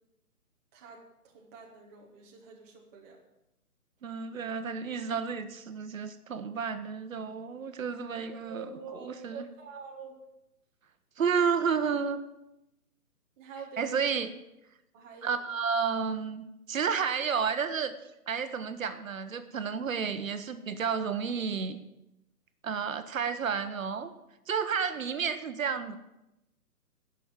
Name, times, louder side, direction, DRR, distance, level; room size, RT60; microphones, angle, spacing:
voice 1, 0.7-3.2 8.3-10.2 13.4-14.3 14.9-15.4, right 5 dB, 10° right, -2 dB, 0.9 m, -46 dB
voice 2, 4.0-8.7 8.9-9.4 11.2-12.2 13.8-14.3 15.2-17.9 18.3-21.8 22.6-24.1 24.5-26.0, right 6 dB, 55° right, 10 dB, 1.0 m, -31 dB
11.0 x 6.2 x 9.0 m, 0.90 s
hypercardioid pair, 155°, 46 cm